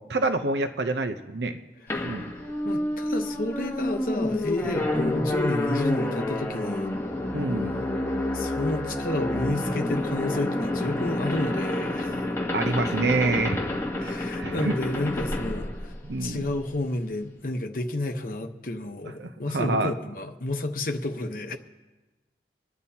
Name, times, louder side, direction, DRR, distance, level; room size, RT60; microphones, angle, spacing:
voice 1, 0.0-1.6 2.0-2.3 7.3-7.8 12.5-13.6 14.0-14.7 16.0-16.5 19.2-19.9, right 3 dB, 75° right, 0.7 m, -27 dB
sound 1, 1.9-16.6, left 1 dB, 15° left, 1.2 m, -29 dB
voice 2, 2.6-6.9 8.3-12.1 14.0-15.9 16.2-21.6, left 1 dB, 50° left, 1.0 m, -31 dB
26.5 x 10.5 x 2.8 m
head